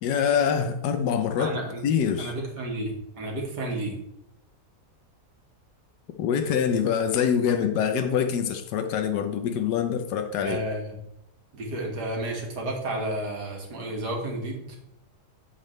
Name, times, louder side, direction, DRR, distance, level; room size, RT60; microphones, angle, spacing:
voice 1, 0.0-2.3 6.2-10.6, left 7 dB, 85° left, 6 dB, 1.3 m, -25 dB
voice 2, 1.4-1.8 2.2-4.0 10.4-11.0 11.5-14.7, right 1 dB, 85° right, -1 dB, 2.4 m, -31 dB
8.2 x 7.6 x 3.2 m, 0.82 s
omnidirectional pair, 1.7 m